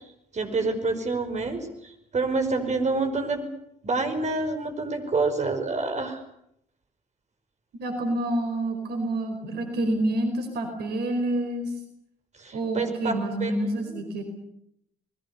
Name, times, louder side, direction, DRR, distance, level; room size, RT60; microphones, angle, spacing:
voice 1, 0.3-3.4 3.8-6.2 12.4-14.0, right 3 dB, 40° right, 7 dB, 5.2 m, -28 dB
voice 2, 7.8-11.7 12.5-14.2, right 1 dB, 60° right, 6 dB, 4.6 m, -28 dB
29.0 x 21.0 x 6.9 m, 0.75 s
figure-of-eight pair, 45°, 19 cm